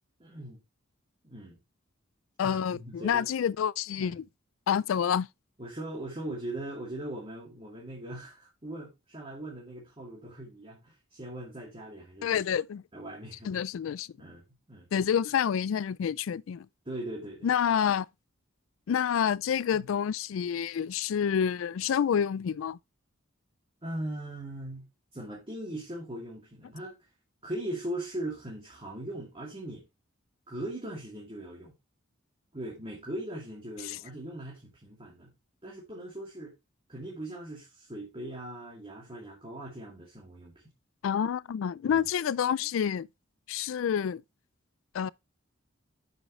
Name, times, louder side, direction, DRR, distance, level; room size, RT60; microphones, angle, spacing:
voice 1, 0.2-0.6 1.2-1.6 2.4-3.3 4.0-4.2 5.6-12.3 12.9-13.5 14.2-14.9 16.9-17.5 19.7-19.9 23.8-27.0 27.4-29.8 30.5-31.7 32.5-35.3 35.6-36.6 36.9-40.5 41.9-42.0, right 1 dB, 25° right, 2.5 m, -40 dB
voice 2, 2.4-4.2 4.7-5.3 12.2-12.8 13.4-14.1 14.9-16.7 17.4-18.1 18.9-22.8 33.9-34.0 41.0-43.1 43.5-44.2 44.9-45.1, left 8 dB, 80° left, 0.3 m, -28 dB
9.1 x 6.5 x 3.1 m
head